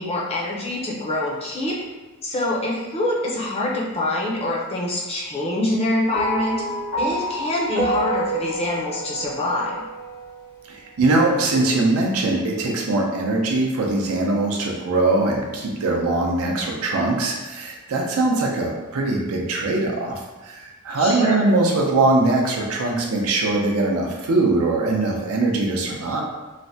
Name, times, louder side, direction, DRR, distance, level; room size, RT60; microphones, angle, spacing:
voice 1, 0.0-1.8 2.2-6.6 7.0-9.8 21.0-21.5, left 1 dB, 25° left, -4 dB, 0.5 m, -25 dB
sound 1, 6.1-10.6, right 1 dB, 70° left, 1.0 m, -28 dB
voice 2, 10.7-26.2, right 2 dB, 70° right, 0 dB, 0.5 m, -21 dB
3.2 x 2.1 x 2.7 m, 1.2 s
head